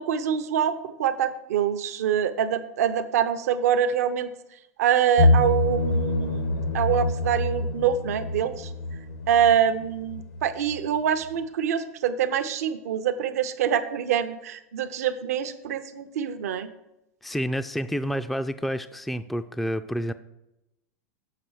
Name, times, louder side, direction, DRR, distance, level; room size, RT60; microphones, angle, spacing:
voice 1, 0.0-4.3 4.8-8.7 9.3-16.7, right 9 dB, 75° right, 10 dB, 0.6 m, -25 dB
sound 1, 5.2-11.0 11.2-11.3, left 2 dB, 80° left, 1.1 m, -26 dB
voice 2, 17.2-20.1, equal, ahead, 10 dB, 0.3 m, -29 dB
6.8 x 5.5 x 6.3 m, 0.88 s
hypercardioid pair, 105°, 8 cm